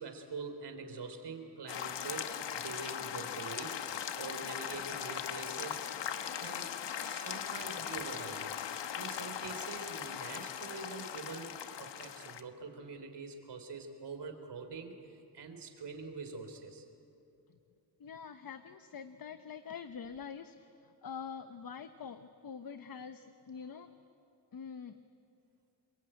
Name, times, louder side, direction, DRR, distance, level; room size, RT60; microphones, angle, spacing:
voice 1, 0.0-3.8 4.2-5.8 6.4-6.7 7.0-8.5 8.9-16.9, right 4 dB, 70° right, 6 dB, 3.7 m, -45 dB
sound 1, 1.7-12.4, left 9 dB, 85° left, 1.2 m, -39 dB
voice 2, 18.0-23.9 24.5-25.0, left 6 dB, 55° left, 9 dB, 1.0 m, -45 dB
29.0 x 21.5 x 9.0 m, 2.7 s
cardioid pair, 100°, 42 cm